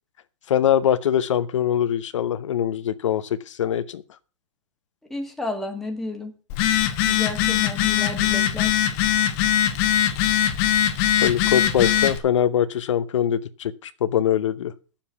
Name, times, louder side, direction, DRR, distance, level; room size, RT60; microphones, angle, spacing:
voice 1, 0.5-4.0 11.2-14.7, left 10 dB, 75° left, 0.8 m, -23 dB
voice 2, 5.1-6.3 7.0-8.7, left 2 dB, ahead, 1.5 m, -31 dB
Telephone, 6.5-12.2, left 10 dB, 30° left, 1.0 m, -21 dB
8.9 x 7.3 x 6.9 m
hypercardioid pair, 155°, 16 cm